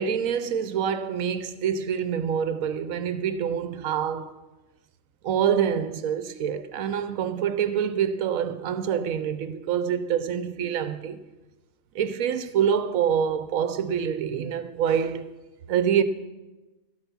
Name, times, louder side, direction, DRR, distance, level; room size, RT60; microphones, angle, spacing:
voice 1, 0.0-4.3 5.2-11.2 11.9-15.3 15.7-16.0, right 8 dB, 70° right, 1.0 m, -26 dB
12.5 x 8.9 x 5.9 m
omnidirectional pair, 1.5 m